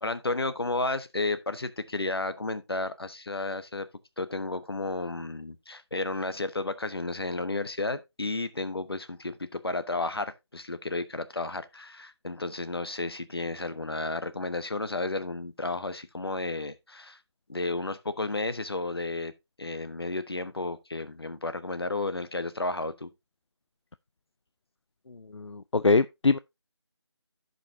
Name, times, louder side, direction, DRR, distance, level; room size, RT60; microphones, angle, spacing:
voice 1, 0.0-3.9 4.2-17.2 17.5-19.3 19.6-23.1, left 2 dB, 55° left, 1.2 m, -32 dB
voice 2, 25.3-26.4, left 3 dB, 75° left, 0.5 m, -23 dB
15.5 x 5.4 x 2.7 m
figure-of-eight pair, 165°, 15 cm